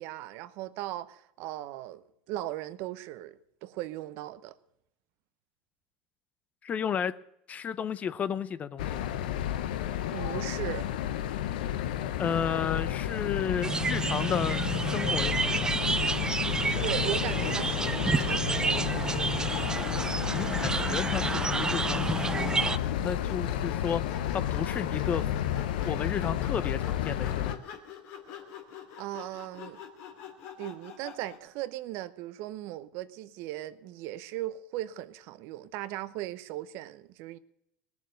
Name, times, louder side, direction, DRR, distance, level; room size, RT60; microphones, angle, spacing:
voice 1, 0.0-4.6 10.1-10.8 16.4-19.1 29.0-29.8 30.6-37.4, right 15 dB, 60° right, 0.9 m, -38 dB
voice 2, 6.6-7.2 7.5-9.1 12.2-15.7 20.3-25.2 25.8-27.6, left 7 dB, 30° left, 0.7 m, -33 dB
sound 1, 8.8-27.6, left 11 dB, 80° left, 0.9 m, -31 dB
sound 2, 13.6-22.8, right 4 dB, 15° right, 0.5 m, -30 dB
Sawing, 16.8-31.5, left 8 dB, 60° left, 2.5 m, -45 dB
18.5 x 7.2 x 7.7 m
supercardioid pair, 105°, 5 cm